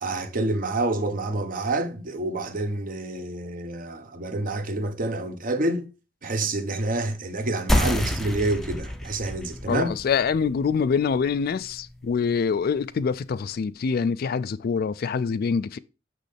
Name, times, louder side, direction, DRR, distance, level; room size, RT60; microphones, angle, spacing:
voice 1, 0.0-5.9 6.2-9.9, right 2 dB, 45° right, 0.9 m, -28 dB
sound 1, 7.7-12.8, left 1 dB, ahead, 0.6 m, -29 dB
voice 2, 9.7-15.8, left 6 dB, 55° left, 0.3 m, -25 dB
6.4 x 6.2 x 3.3 m
head